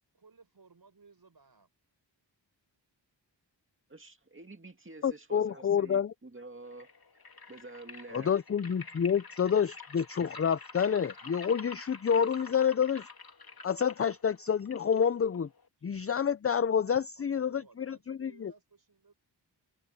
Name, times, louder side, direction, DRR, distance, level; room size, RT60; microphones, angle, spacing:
voice 1, 0.0-1.7 17.2-19.1, right 4 dB, 55° right, 7.1 m, -60 dB
voice 2, 3.9-6.9 7.5-8.3, right 2 dB, 25° right, 2.3 m, -48 dB
voice 3, 5.0-6.1 8.1-13.1 13.6-15.5 15.8-18.5, left 7 dB, 35° left, 0.4 m, -28 dB
sound 1, 6.7-15.7, left 4 dB, 55° left, 2.5 m, -48 dB
wide cardioid pair, 95°, 44 cm